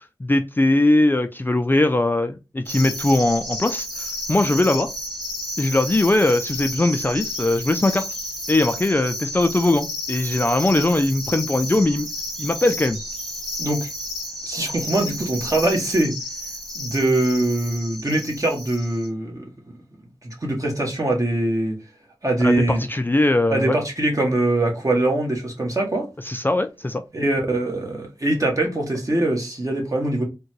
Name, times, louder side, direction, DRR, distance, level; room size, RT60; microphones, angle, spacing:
voice 1, 0.2-3.9 4.3-4.9 5.6-8.2 8.5-12.1 12.4-13.0 22.4-23.8 26.2-27.0, left 2 dB, 25° left, 0.4 m, -20 dB
sound 1, 2.7-19.1, left 1 dB, 5° right, 1.3 m, -32 dB
voice 2, 13.6-13.9 14.5-16.2 16.7-19.5 20.2-21.8 22.2-22.8 23.5-26.1 27.1-30.2, right 1 dB, 40° right, 1.3 m, -22 dB
3.6 x 2.2 x 3.0 m
wide cardioid pair, 50°, 9 cm